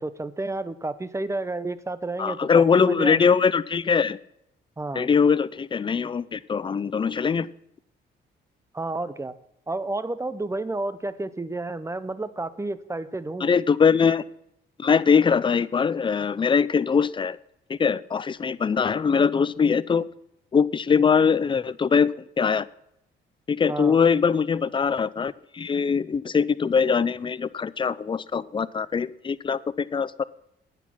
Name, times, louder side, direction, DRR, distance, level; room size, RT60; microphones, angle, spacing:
voice 1, 0.0-3.2 4.8-5.1 8.7-9.3 9.7-13.5 23.7-24.0, right 2 dB, 15° right, 14 dB, 0.7 m, -31 dB
voice 2, 2.2-4.2 4.9-7.5 13.4-14.2 14.8-17.4 17.7-20.1 20.5-22.7 23.5-30.2, left 6 dB, 25° left, 17 dB, 0.4 m, -22 dB
9.8 x 8.3 x 5.8 m, 0.78 s
cardioid pair, 90°, 20 cm